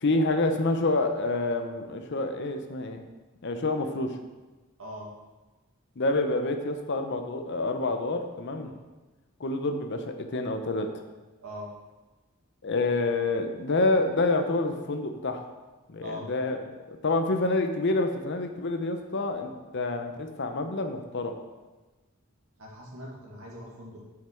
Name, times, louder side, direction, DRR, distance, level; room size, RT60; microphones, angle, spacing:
voice 1, 0.0-3.0 3.4-4.1 6.0-8.7 9.4-10.9 12.6-15.5 15.9-16.6 16.9-21.4, left 2 dB, 55° left, 6 dB, 0.7 m, -27 dB
voice 2, 22.6-24.0, equal, 80° right, -3 dB, 2.1 m, -41 dB
7.5 x 5.8 x 4.5 m, 1.2 s
head